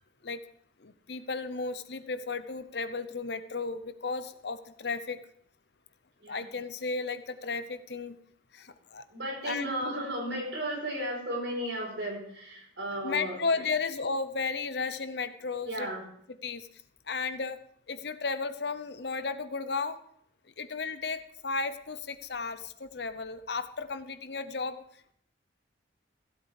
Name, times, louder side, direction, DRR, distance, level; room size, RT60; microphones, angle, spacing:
voice 1, 0.8-5.2 6.3-8.2 8.5-9.0 9.4-9.9 13.0-15.9 16.3-16.8 17.1-17.6 17.9-20.0 20.6-25.1, left 4 dB, 60° left, 12 dB, 0.8 m, -34 dB
voice 2, 9.1-13.4 15.7-16.0, right 1 dB, 75° right, -1 dB, 5.0 m, -34 dB
15.5 x 8.4 x 4.8 m, 0.67 s
head